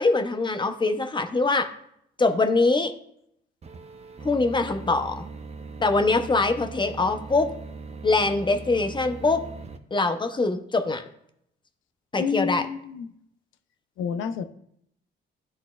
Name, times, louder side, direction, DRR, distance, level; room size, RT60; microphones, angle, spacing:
voice 1, 0.0-1.7 2.2-2.9 4.2-5.3 5.8-7.5 8.0-9.4 9.9-11.0 12.1-12.7, left 3 dB, 25° left, 7 dB, 0.6 m, -23 dB
sound 1, 3.6-9.8, right 4 dB, 30° right, 0.6 m, -40 dB
voice 2, 12.2-13.1 14.0-14.4, left 6 dB, 80° left, 12 dB, 0.5 m, -29 dB
11.0 x 4.2 x 2.3 m, 0.73 s
cardioid pair, 90°, 20 cm